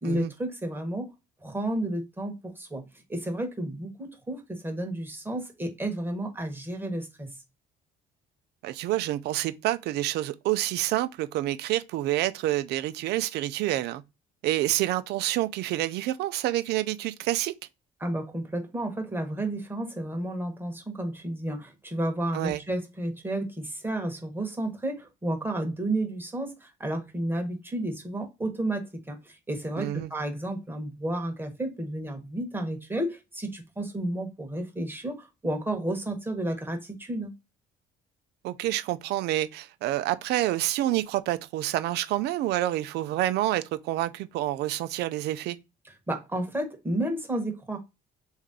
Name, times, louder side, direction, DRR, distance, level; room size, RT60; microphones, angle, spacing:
voice 1, 0.0-1.1 1.4-2.8 3.1-7.3 18.0-37.3 46.1-47.8, right 1 dB, 10° right, 1.2 m, -32 dB
voice 2, 8.6-14.0 14.4-17.5 22.3-22.6 29.8-30.1 38.4-45.6, right 15 dB, 80° right, 0.5 m, -28 dB
3.3 x 2.6 x 3.6 m
cardioid pair, 110°, 17 cm